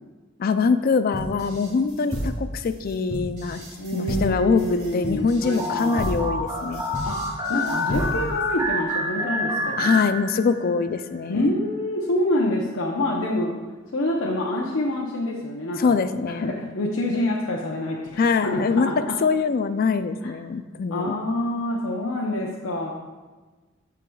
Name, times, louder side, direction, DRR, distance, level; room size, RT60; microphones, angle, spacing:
voice 1, 0.4-3.6 3.9-6.8 9.8-11.5 15.8-16.5 18.2-18.9 19.2-21.1, left 5 dB, 50° left, 11 dB, 0.4 m, -23 dB
sound 1, 1.1-8.4, equal, 40° right, 1.8 m, -32 dB
voice 2, 3.6-6.0 7.0-7.2 7.5-10.0 11.3-13.6 13.9-15.9 16.3-19.1 20.2-20.3 20.9-22.9, left 1 dB, 90° left, -2 dB, 0.7 m, -26 dB
sound 2, 5.6-10.7, left 1 dB, 20° right, 1.0 m, -28 dB
14.5 x 4.8 x 2.3 m, 1.3 s
head